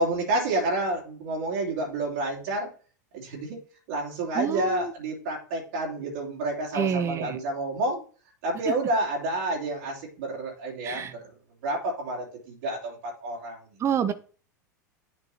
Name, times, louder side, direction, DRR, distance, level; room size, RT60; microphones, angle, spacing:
voice 1, 0.0-2.7 3.1-3.6 3.9-8.0 8.4-11.2 11.6-13.6, right 2 dB, 60° right, -2 dB, 3.1 m, -29 dB
voice 2, 4.3-4.9 6.7-7.4 8.7-8.8 10.8-11.1 13.8-14.1, right 8 dB, 30° right, 12 dB, 0.7 m, -27 dB
10.0 x 5.2 x 2.9 m, 0.38 s
figure-of-eight pair, 85°, 10 cm